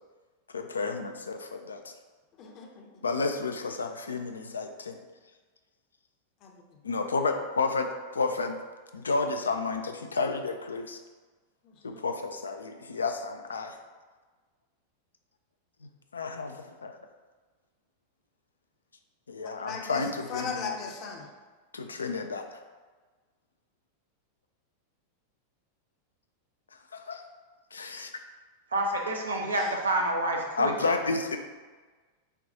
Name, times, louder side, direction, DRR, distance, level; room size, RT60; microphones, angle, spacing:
voice 1, 0.5-1.9 3.0-5.0 6.8-8.6 8.9-11.0 11.8-13.8 15.8-17.0 19.3-20.7 21.7-22.5 26.9-27.2 27.7-28.1 30.6-31.4, left 4 dB, 75° left, 6 dB, 0.3 m, -31 dB
voice 2, 2.4-3.0 6.4-6.6 11.6-12.0 19.4-20.0 20.3-21.3 29.3-29.8, left 5 dB, 40° left, 1 dB, 0.6 m, -38 dB
voice 3, 28.7-30.7, right 1 dB, 75° right, 1 dB, 0.6 m, -28 dB
6.8 x 2.3 x 2.7 m, 1.4 s
figure-of-eight pair, 90°, 0 cm